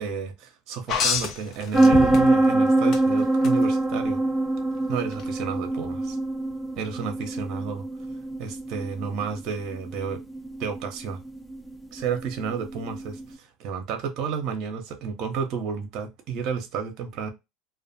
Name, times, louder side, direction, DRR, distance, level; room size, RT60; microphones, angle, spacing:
voice 1, 0.0-4.2 4.9-6.2 6.8-7.9 8.4-10.2 10.6-11.2 11.9-17.3, right 6 dB, 55° right, 0.7 m, -31 dB
sound 1, 0.9-2.5 2.9-3.5 5.1-5.2, left 6 dB, 50° left, 0.7 m, -27 dB
sound 2, 1.7-13.2, right 2 dB, 5° left, 0.6 m, -24 dB
2.4 x 2.2 x 2.6 m
hypercardioid pair, 85°, 0 cm